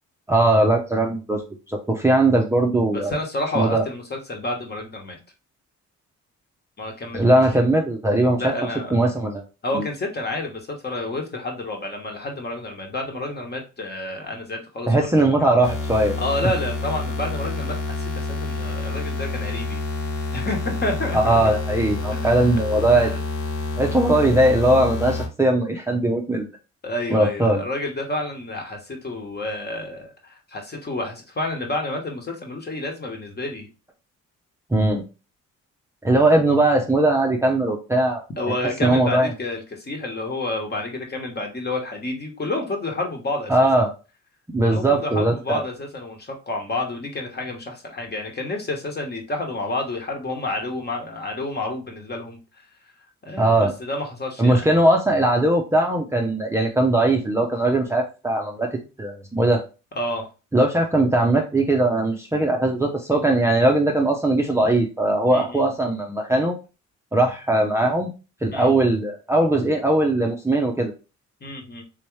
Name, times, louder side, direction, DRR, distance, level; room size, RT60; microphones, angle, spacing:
voice 1, 0.3-1.4 1.7-3.1 3.5-3.9 7.1-8.5 8.9-9.4 9.7-9.8 14.9-16.2 21.1-23.1 23.8-26.5 27.1-27.6 34.7-35.0 36.0-38.2 38.8-39.3 43.5-43.9 44.5-45.6 53.4-53.7 54.4-58.7 59.0-59.6 60.5-66.5 67.1-68.1 68.4-70.9, right 1 dB, 10° right, 1 dB, 0.6 m, -19 dB
voice 2, 2.9-5.2 6.8-7.4 8.4-9.0 9.6-15.1 16.2-19.8 20.3-21.4 22.1-22.4 22.9-23.2 26.8-33.7 38.4-43.7 44.6-52.6 53.2-54.7 60.0-60.3 65.3-65.7 68.5-68.8 71.4-71.8, left 2 dB, 35° left, 2 dB, 1.2 m, -29 dB
sound 1, 15.6-25.3, left 3 dB, 80° left, 1.2 m, -28 dB
3.5 x 3.0 x 3.1 m, 0.31 s
cardioid pair, 90°, 30 cm